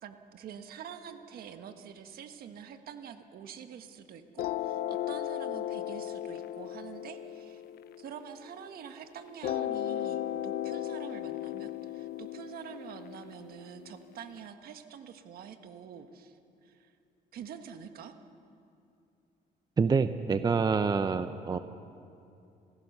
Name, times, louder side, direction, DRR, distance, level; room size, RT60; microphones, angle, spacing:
voice 1, 0.0-7.6 8.0-16.4 16.6-16.9 17.3-18.2, right 8 dB, 65° right, 7 dB, 1.5 m, -46 dB
sound 1, 4.4-8.8 9.4-14.4, left 12 dB, 65° left, 0.7 m, -36 dB
voice 2, 19.8-21.6, right 5 dB, 25° right, 10 dB, 0.6 m, -27 dB
26.0 x 16.5 x 6.7 m, 2.6 s
cardioid pair, 110°, 17 cm